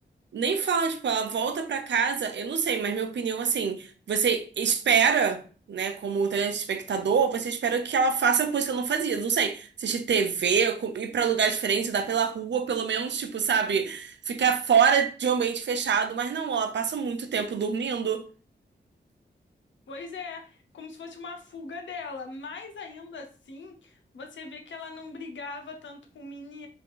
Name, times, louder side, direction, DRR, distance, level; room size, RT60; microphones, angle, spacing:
voice 1, 0.3-5.4 5.7-18.3, right 6 dB, 75° right, 0.6 m, -26 dB
voice 2, 19.9-26.7, left 4 dB, 90° left, 0.8 m, -40 dB
3.5 x 2.4 x 3.8 m
cardioid pair, 55°, 19 cm